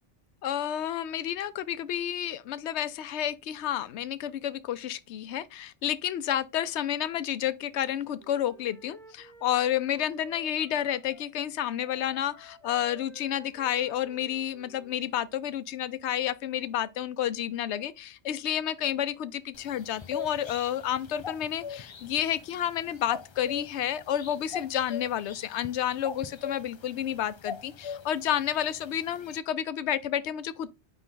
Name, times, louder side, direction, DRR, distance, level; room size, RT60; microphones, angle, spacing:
voice 1, 0.4-30.7, left 10 dB, 75° left, 0.9 m, -30 dB
Wind instrument woodwind instrument, 7.7-11.3 11.6-15.4, left 1 dB, ahead, 1.2 m, -52 dB
sound 1, 19.5-29.4, left 6 dB, 45° left, 0.3 m, -42 dB
9.2 x 3.6 x 3.8 m
omnidirectional pair, 1.2 m